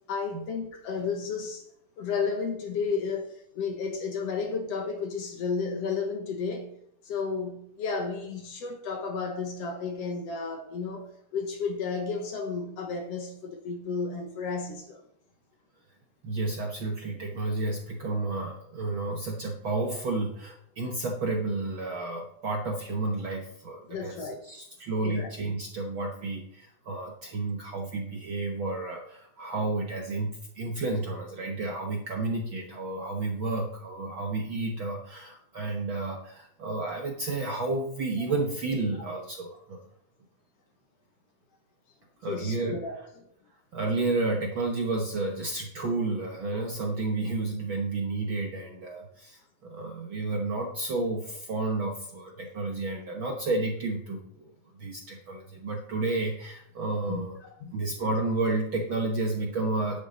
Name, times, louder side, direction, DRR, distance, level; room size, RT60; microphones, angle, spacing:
voice 1, 0.1-1.6 2.0-6.8 7.1-15.0 23.9-24.4 25.0-25.3 42.3-42.9 57.1-57.2 57.6-57.8, left 5 dB, 60° left, 2.0 m, -32 dB
voice 2, 16.2-39.8 42.2-42.7 43.7-57.3 57.7-60.0, right 2 dB, 60° right, 1.4 m, -31 dB
10.0 x 9.3 x 4.0 m
omnidirectional pair, 3.5 m